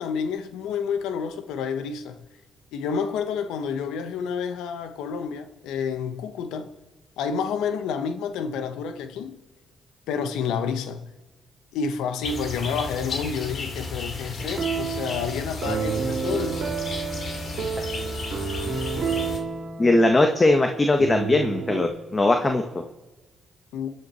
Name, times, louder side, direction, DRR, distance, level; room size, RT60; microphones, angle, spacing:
voice 1, 0.0-2.3 2.7-6.7 7.2-9.4 10.1-11.1 11.7-16.6 23.7-23.9, left 6 dB, 85° left, 1.1 m, -29 dB
sound 1, 12.2-19.4, left 3 dB, 55° left, 2.8 m, -33 dB
sound 2, 14.4-21.8, right 6 dB, 65° right, 2.3 m, -30 dB
voice 2, 19.8-22.8, left 2 dB, 30° left, 1.5 m, -20 dB
28.5 x 10.0 x 4.4 m
supercardioid pair, 60°, 0 cm